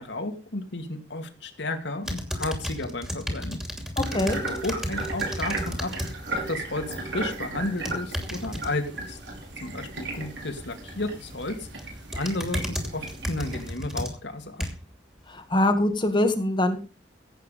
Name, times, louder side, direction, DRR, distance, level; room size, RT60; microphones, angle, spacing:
voice 1, 0.0-3.6 4.5-5.9 6.5-9.2 9.6-11.7 12.1-14.7, left 2 dB, 65° left, 6 dB, 2.4 m, -32 dB
sound 1, 2.0-6.1 6.5-6.9 7.7-8.7 11.1-11.4 11.8-15.0 15.5-15.6, equal, 5° right, 2.8 m, -33 dB
voice 2, 4.0-4.4 15.3-16.8, left 1 dB, 25° left, 6 dB, 1.7 m, -23 dB
sound 2, 4.0-13.7, right 2 dB, 70° right, 5.7 m, -35 dB
16.0 x 8.5 x 5.3 m, 0.33 s
head